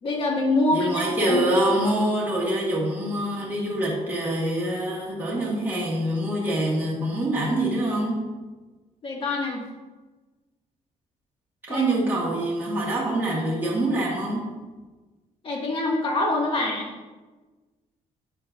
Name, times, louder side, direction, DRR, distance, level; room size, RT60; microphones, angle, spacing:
voice 1, 0.0-1.4 9.0-9.6 11.7-11.9 15.4-16.9, left 2 dB, 40° left, -2 dB, 1.8 m, -25 dB
voice 2, 0.7-8.3 11.7-14.5, right 1 dB, 15° right, -5 dB, 1.5 m, -25 dB
8.8 x 7.6 x 2.5 m, 1.3 s
cardioid pair, 140°, 13 cm